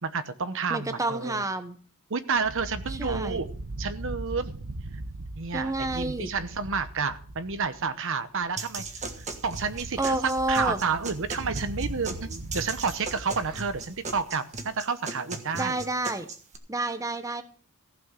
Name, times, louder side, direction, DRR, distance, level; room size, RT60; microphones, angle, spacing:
voice 1, 0.0-1.4 2.1-3.5 3.8-4.6 5.4-8.8 9.2-15.8, right 5 dB, 60° right, 11 dB, 0.9 m, -30 dB
voice 2, 0.7-1.8 2.9-3.4 5.5-6.3 10.0-10.8 15.5-16.3 16.7-17.4, right 2 dB, 15° right, 10 dB, 0.9 m, -29 dB
sound 1, 2.4-7.9 8.4-8.5 8.8-14.3, right 1 dB, 80° right, 1.2 m, -39 dB
sound 2, 8.6-16.6, right 3 dB, 30° right, 1.5 m, -38 dB
15.0 x 6.3 x 7.2 m, 0.42 s
head